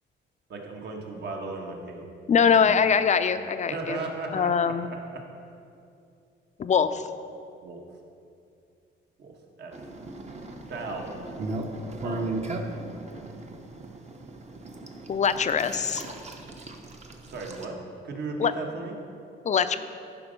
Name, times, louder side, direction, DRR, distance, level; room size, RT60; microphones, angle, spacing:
voice 1, 0.5-2.8 3.7-4.7 7.6-7.8 9.2-9.3 9.6-9.7 10.7-11.2 12.0-12.3 17.3-17.8 18.0-18.9, right 3 dB, 60° right, 1 dB, 1.4 m, -36 dB
voice 2, 2.3-4.0 4.3-4.9 6.6-7.0 15.1-16.0 18.4-18.5 19.5-19.8, left 6 dB, 35° left, 11 dB, 0.5 m, -22 dB
sound 1, 9.7-17.6, right 2 dB, 35° right, 0.9 m, -37 dB
10.5 x 5.1 x 5.2 m, 2.5 s
cardioid pair, 90°, 20 cm